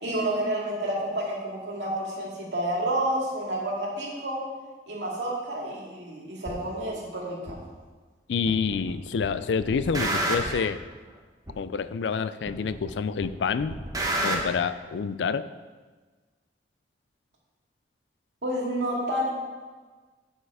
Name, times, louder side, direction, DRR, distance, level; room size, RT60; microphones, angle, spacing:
voice 1, 0.0-4.4 4.9-7.6 18.4-19.3, right 1 dB, 80° right, -3 dB, 2.2 m, -29 dB
sound 1, 6.4-6.6 7.5-7.6 8.5-8.9 9.2-10.7 11.5-11.6 12.5-12.9 13.2-14.4, right 1 dB, 20° right, 1.0 m, -29 dB
voice 2, 8.3-10.8 11.6-13.8 14.2-15.5, left 5 dB, 75° left, 14 dB, 0.4 m, -28 dB
9.5 x 5.6 x 4.8 m, 1.4 s
head